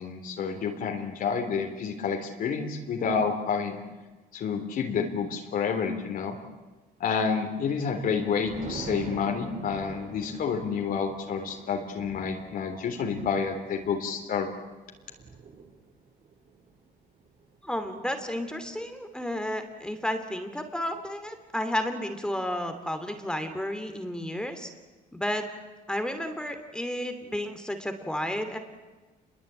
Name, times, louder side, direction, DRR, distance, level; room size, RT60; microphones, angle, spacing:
voice 1, 0.0-3.8 4.3-6.4 7.0-14.5, left 6 dB, 60° left, 3 dB, 3.5 m, -29 dB
Thunder, 7.5-18.9 19.3-19.6, right 4 dB, 45° right, 4.3 m, -45 dB
voice 2, 17.6-24.7 25.1-25.4 25.9-28.6, left 1 dB, 5° left, 7 dB, 2.8 m, -32 dB
28.5 x 22.5 x 9.0 m, 1.3 s
cardioid pair, 110°, 17 cm